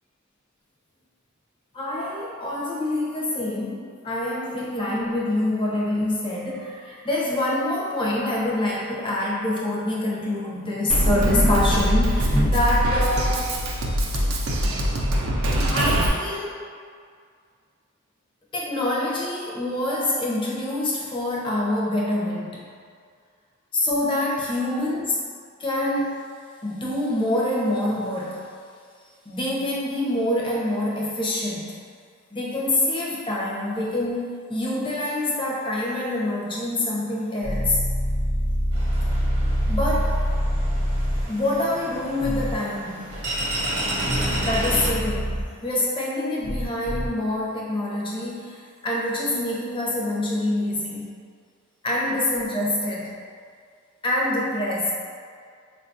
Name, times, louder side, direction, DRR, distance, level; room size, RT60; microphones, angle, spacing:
voice 1, 1.7-13.5 15.7-16.7 18.5-22.6 23.7-25.1 25.6-26.2 26.6-28.4 29.3-31.8 32.3-37.8 39.7-40.2 41.3-43.2 44.4-51.1 51.8-53.1 54.0-54.9, left 1 dB, 25° left, -4 dB, 0.5 m, -26 dB
Drum kit, 10.9-16.1, equal, 70° right, 0.4 m, -22 dB
sound 1, 37.4-41.2 42.2-42.6 44.1-45.4 46.4-47.1, equal, 70° left, 0.8 m, -25 dB
sound 2, 38.7-44.9, right 1 dB, 55° right, 0.8 m, -31 dB
4.2 x 2.3 x 2.5 m, 2.1 s
head